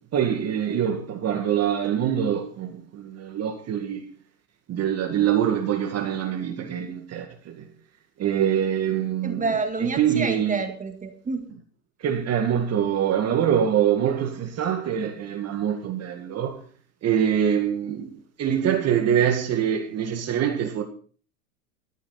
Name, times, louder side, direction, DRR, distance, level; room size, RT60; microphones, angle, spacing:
voice 1, 0.1-4.1 4.7-7.6 8.2-9.5 9.8-10.6 12.0-16.6 17.0-18.1 18.4-20.8, right 9 dB, 30° right, 2.0 m, -24 dB
voice 2, 9.2-11.5, right 4 dB, 15° right, 1.9 m, -28 dB
15.0 x 13.0 x 4.1 m
hypercardioid pair, 110°, 48 cm